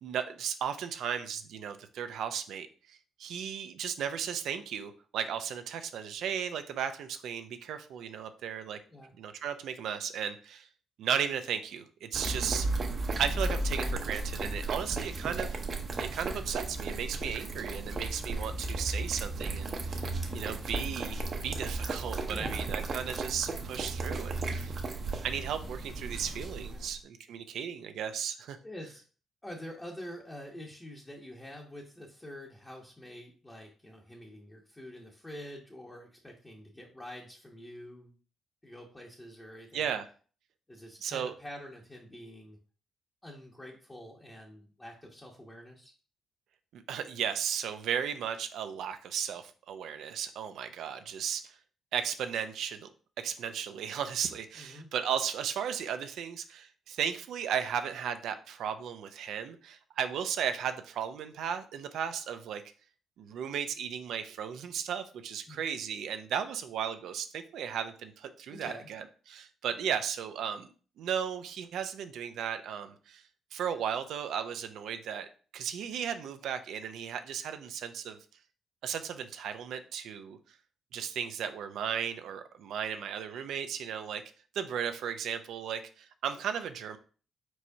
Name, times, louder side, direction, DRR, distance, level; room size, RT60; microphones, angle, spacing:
voice 1, 0.0-8.8 9.2-10.7 11.0-12.7 13.2-15.6 16.0-20.0 20.3-24.8 25.2-28.6 39.7-40.1 41.0-41.3 46.7-51.6 51.9-52.9 53.2-62.6 63.2-70.7 71.0-73.2 73.5-75.3 75.5-78.2 78.8-80.4 80.9-84.2 84.5-87.0, right 8 dB, 75° right, 9 dB, 0.5 m, -35 dB
sound 1, 12.1-26.9, right 2 dB, 45° right, 0.8 m, -35 dB
voice 2, 22.3-22.7 26.7-26.9 28.6-29.0 29.4-38.2 38.6-40.0 40.7-42.6 43.2-45.9 54.6-54.9 65.5-65.6 68.5-68.9, left 1 dB, 15° left, -3 dB, 0.9 m, -46 dB
4.6 x 4.2 x 2.7 m, 0.39 s
cardioid pair, 90°, 0 cm